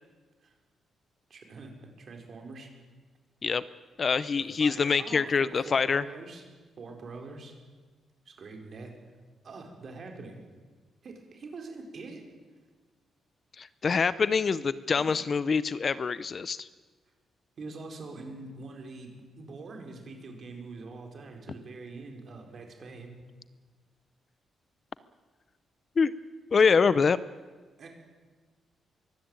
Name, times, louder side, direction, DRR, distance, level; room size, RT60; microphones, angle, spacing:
voice 1, 1.3-2.7 4.4-6.4 6.8-7.5 8.3-8.9 9.4-10.4 11.0-12.3 15.0-15.1 17.6-23.1 27.8-27.9, right 3 dB, 45° right, 3 dB, 4.6 m, -44 dB
voice 2, 4.0-6.1 13.6-16.7 26.0-26.1 26.5-27.2, left 5 dB, 35° left, 16 dB, 0.6 m, -25 dB
23.0 x 16.0 x 9.0 m, 1.4 s
cardioid pair, 145°, 0 cm